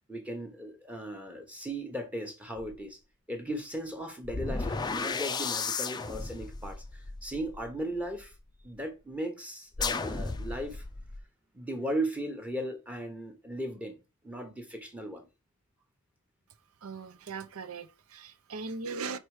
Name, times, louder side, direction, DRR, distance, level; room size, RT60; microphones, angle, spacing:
voice 1, 0.1-3.0 3.3-8.3 8.6-10.8 11.5-14.0 14.2-15.3, right 1 dB, 5° right, 1.0 m, -37 dB
sound 1, 2.6-2.7 4.2-8.3 9.7-11.2, left 4 dB, 20° left, 0.4 m, -34 dB
voice 2, 16.8-19.2, right 4 dB, 70° right, 0.6 m, -39 dB
4.6 x 4.4 x 4.8 m
head